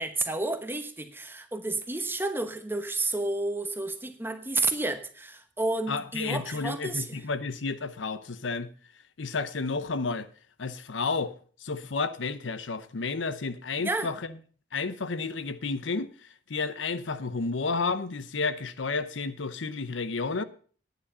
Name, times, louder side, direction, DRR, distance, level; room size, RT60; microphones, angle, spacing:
voice 1, 0.0-7.2 13.8-14.1, right 2 dB, 10° right, 1.0 m, -31 dB
voice 2, 5.9-8.7 9.2-10.3 10.6-11.3 11.6-14.4 14.7-16.1 16.5-20.4, left 4 dB, 80° left, 0.8 m, -31 dB
10.0 x 9.2 x 5.4 m
head